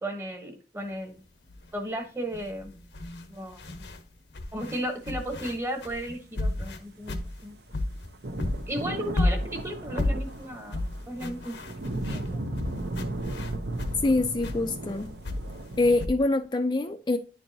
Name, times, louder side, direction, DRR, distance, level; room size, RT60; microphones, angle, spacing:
voice 1, 0.0-1.2 1.7-2.7 3.3-3.6 4.5-7.6 8.7-11.6 12.0-12.5, equal, 15° right, 1.0 m, -35 dB
sound 1, 1.5-1.7 2.3-4.0 4.3-8.1 8.4-14.0 14.4-16.1, left 1 dB, 80° left, 0.9 m, -32 dB
sound 2, 7.0-16.1, right 1 dB, 65° right, 0.8 m, -36 dB
voice 2, 14.0-15.1 15.8-17.2, left 2 dB, 25° left, 0.4 m, -25 dB
9.9 x 4.5 x 2.7 m
head